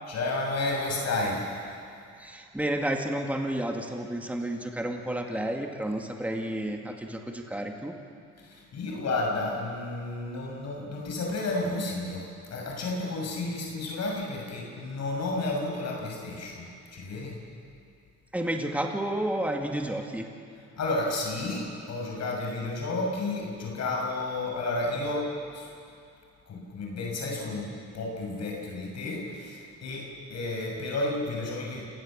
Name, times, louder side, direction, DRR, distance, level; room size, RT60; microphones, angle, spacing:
voice 1, 0.1-1.4 8.4-17.4 20.8-25.7 26.5-31.8, left 2 dB, 60° left, -1 dB, 6.5 m, -32 dB
voice 2, 2.2-7.9 18.3-20.3, right 1 dB, 5° right, 2 dB, 2.3 m, -31 dB
28.0 x 18.5 x 7.6 m, 2.5 s
cardioid pair, 90°, 30 cm